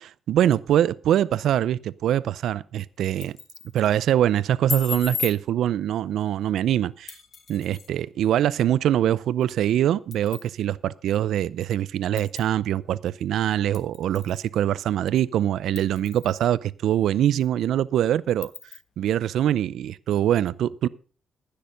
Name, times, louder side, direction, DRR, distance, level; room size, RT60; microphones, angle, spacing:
voice 1, 0.0-3.4 3.7-7.1 7.5-18.5 19.0-20.9, right 11 dB, 75° right, 0.5 m, -23 dB
sound 1, 3.0-3.7 4.7-5.4 7.1-7.9 9.4-9.5 10.1-10.5 11.1-11.2 12.2-12.5 13.7-14.4 14.8-14.9 15.7-16.4 16.9-17.0 17.4-17.5 18.4-18.8, left 5 dB, 55° left, 1.4 m, -35 dB
15.5 x 6.7 x 5.2 m
cardioid pair, 90°, 0 cm